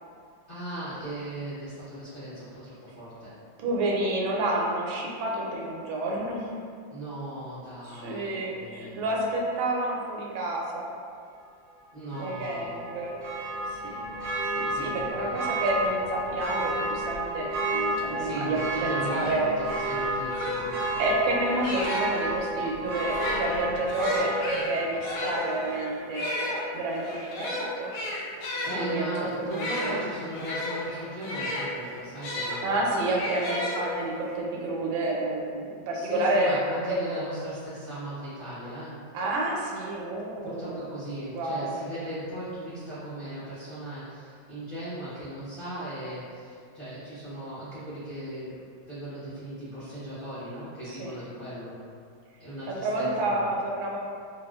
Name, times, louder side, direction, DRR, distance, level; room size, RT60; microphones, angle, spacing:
voice 1, 0.5-3.3 6.9-9.0 11.9-12.8 14.7-15.3 18.2-19.5 19.9-20.8 28.6-32.9 35.9-39.0 40.4-51.8 52.4-53.1 53.3-53.5, right 1 dB, 65° left, -14 dB, 0.5 m, -38 dB
voice 2, 3.6-6.6 7.8-10.9 12.1-13.2 13.7-14.0 14.6-19.5 21.0-27.9 28.7-29.1 29.4-30.0 32.6-36.6 36.9-37.2 39.1-40.8 41.3-41.8 50.9-51.1 52.7-54.0, right 1 dB, 80° right, -2 dB, 1.3 m, -29 dB
Church bell, 12.1-25.7 26.1-26.2, right 2 dB, 65° right, 0.8 m, -32 dB
sound 1, 18.7-18.8 19.0-22.3 23.0-32.6 33.2-34.3, left 1 dB, 85° left, 1.4 m, -33 dB
4.1 x 2.0 x 2.2 m, 2.2 s
omnidirectional pair, 2.1 m